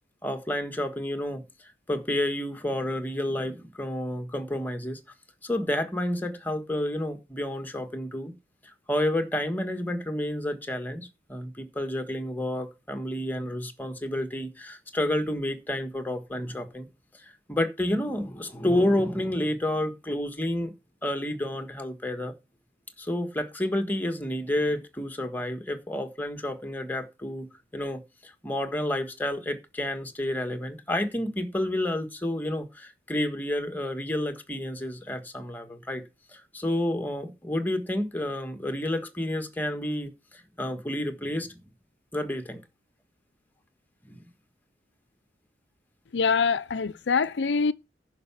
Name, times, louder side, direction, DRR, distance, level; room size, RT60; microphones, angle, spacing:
voice 1, 0.2-1.4 1.9-5.0 5.4-8.3 8.9-16.9 17.2-20.7 21.0-22.3 23.0-36.0 36.3-41.6 42.1-42.6 44.1-44.3, left 1 dB, 10° left, 1.5 m, -30 dB
voice 2, 46.1-47.7, left 5 dB, 70° left, 0.5 m, -24 dB
10.5 x 5.8 x 7.2 m
head